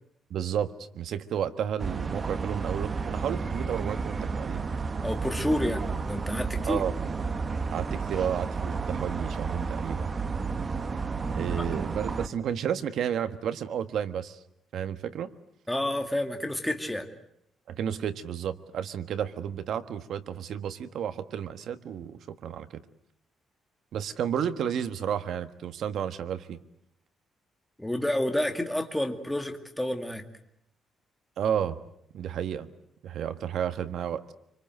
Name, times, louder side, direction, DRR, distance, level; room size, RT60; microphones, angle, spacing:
voice 1, 0.3-4.7 6.6-6.9 7.7-10.1 11.3-14.4 14.7-15.3 17.7-22.8 23.9-26.6 31.4-31.8 32.1-32.7 33.0-34.2, right 9 dB, 60° right, 10 dB, 1.5 m, -32 dB
sound 1, 1.8-12.3, right 4 dB, 30° right, 1.1 m, -32 dB
voice 2, 5.0-6.8 15.7-17.1 27.8-30.2, left 1 dB, 5° left, 5 dB, 2.2 m, -29 dB
26.0 x 25.0 x 7.9 m, 0.75 s
cardioid pair, 150°, 0 cm